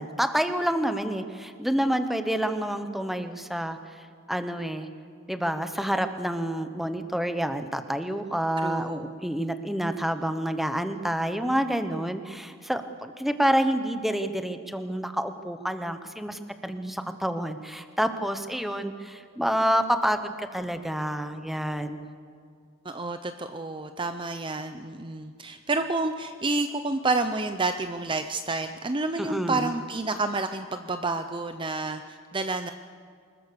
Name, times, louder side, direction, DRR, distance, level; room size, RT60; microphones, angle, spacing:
voice 1, 0.0-3.8 4.3-4.9 5.3-22.1 29.2-29.7, equal, ahead, 8 dB, 1.0 m, -28 dB
voice 2, 8.6-9.2 22.8-32.7, right 3 dB, 25° right, 8 dB, 0.6 m, -29 dB
25.5 x 20.5 x 6.9 m, 2.2 s
head